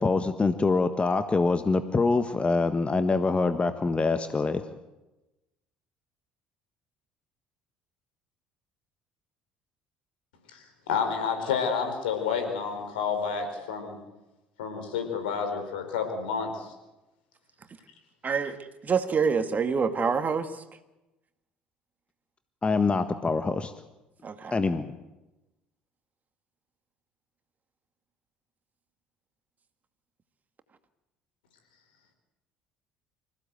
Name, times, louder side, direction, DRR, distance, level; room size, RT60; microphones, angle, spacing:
voice 1, 0.0-4.6 22.6-23.7 24.5-24.9, left 3 dB, 25° left, 10 dB, 1.5 m, -25 dB
voice 2, 10.5-14.0 14.6-16.7, left 6 dB, 75° left, 6 dB, 4.5 m, -30 dB
voice 3, 18.2-18.6 18.8-20.6 24.2-24.6, right 5 dB, 35° right, 9 dB, 2.0 m, -26 dB
26.0 x 16.0 x 8.0 m, 1.0 s
figure-of-eight pair, 60°, 5 cm